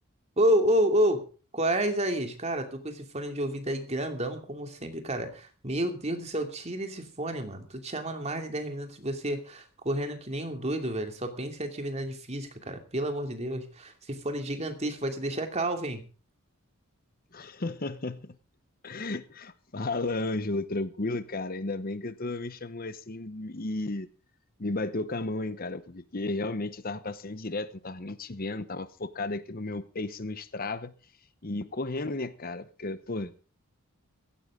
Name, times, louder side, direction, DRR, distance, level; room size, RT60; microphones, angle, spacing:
voice 1, 0.4-1.2 1.5-16.0, right 1 dB, 30° right, 2.7 m, -30 dB
voice 2, 17.3-18.4 18.8-24.1 24.6-31.0 31.4-33.4, left 2 dB, 40° left, 0.9 m, -33 dB
16.5 x 15.5 x 3.7 m
head